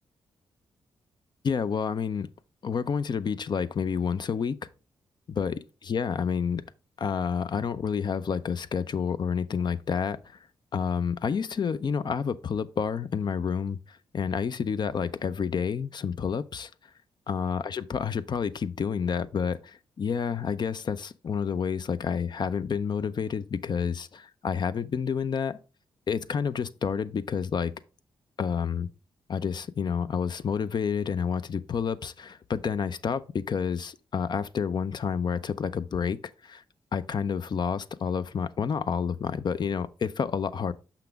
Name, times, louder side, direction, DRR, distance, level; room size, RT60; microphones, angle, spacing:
voice 1, 1.4-2.3 2.6-4.6 5.3-5.6 5.9-6.6 7.0-10.2 10.7-16.7 17.3-25.6 26.1-27.7 28.4-28.9 29.3-36.6 36.9-40.7, left 6 dB, 50° left, 0.5 m, -29 dB
5.8 x 5.8 x 3.4 m
cardioid pair, 70°, 10 cm